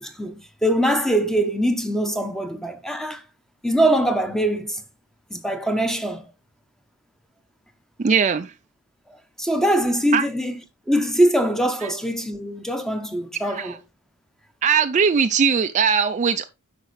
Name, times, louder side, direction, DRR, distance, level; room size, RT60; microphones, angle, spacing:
voice 1, 0.0-3.2 3.6-4.8 5.3-6.3 9.4-10.6 10.9-13.8, right 1 dB, ahead, 0.8 m, -22 dB
voice 2, 8.0-8.5 10.1-10.2 11.8-11.9 13.4-13.8 14.6-16.4, right 6 dB, 35° right, 0.3 m, -20 dB
8.3 x 5.8 x 3.2 m
head